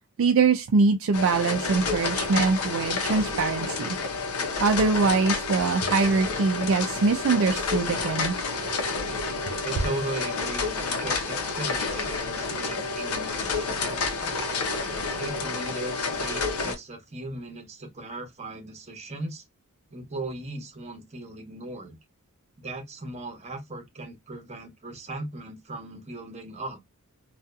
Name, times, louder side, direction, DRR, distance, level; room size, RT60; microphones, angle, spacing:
voice 1, 0.2-4.0 4.6-8.4, right 4 dB, 60° right, 0.4 m, -23 dB
sound 1, 1.1-16.7, left 4 dB, 90° left, 0.7 m, -29 dB
voice 2, 9.6-14.5 15.2-19.4 19.9-22.0 22.6-26.8, right 2 dB, 30° right, 0.9 m, -37 dB
2.7 x 2.4 x 2.2 m
head